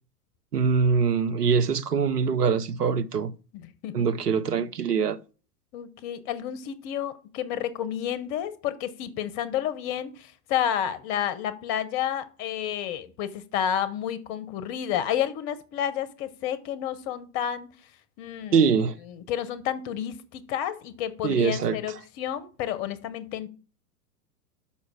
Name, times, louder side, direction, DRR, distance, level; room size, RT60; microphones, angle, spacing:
voice 1, 0.5-3.3 3.9-5.2 18.5-19.0 21.2-21.8, right 6 dB, 75° right, 0.8 m, -23 dB
voice 2, 3.6-4.1 5.7-17.7 18.2-18.7 19.3-23.5, left 10 dB, 30° left, 0.8 m, -30 dB
6.3 x 5.5 x 4.8 m
figure-of-eight pair, 100°, 47 cm